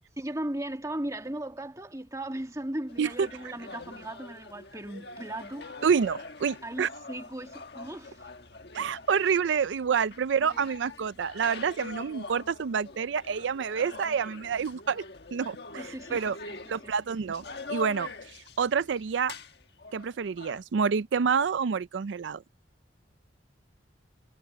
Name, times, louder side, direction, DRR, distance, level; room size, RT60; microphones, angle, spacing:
voice 1, 0.2-5.7 6.6-8.2 10.4-10.6 15.8-16.9, right 1 dB, 15° right, 1.8 m, -37 dB
sound 1, 2.9-20.6, left 3 dB, 60° left, 1.5 m, -44 dB
voice 2, 5.8-6.9 8.7-15.0 15.3-15.8 16.1-16.4 16.7-17.4 17.7-19.3 19.9-22.4, right 6 dB, 75° right, 0.4 m, -28 dB
head